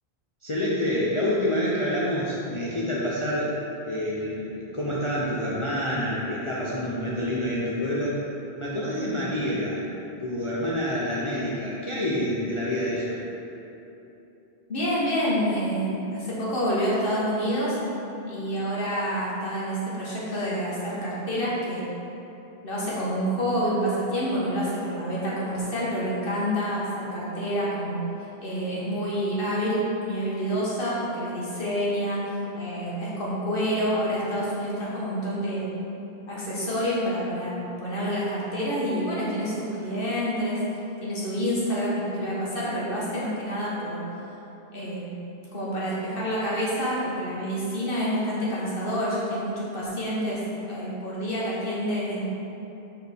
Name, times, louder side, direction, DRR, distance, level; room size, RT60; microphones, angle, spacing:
voice 1, 0.4-3.6 3.9-8.2 8.6-9.8 10.2-13.2, left 1 dB, 35° left, -7 dB, 0.6 m, -27 dB
voice 2, 14.7-17.8 18.3-21.8 22.6-28.0 28.4-35.7 36.3-40.6 41.0-44.0 44.7-45.1 45.5-50.4 50.7-52.2, equal, 60° left, -7 dB, 1.5 m, -28 dB
6.5 x 4.3 x 3.5 m, 2.9 s
omnidirectional pair, 1.1 m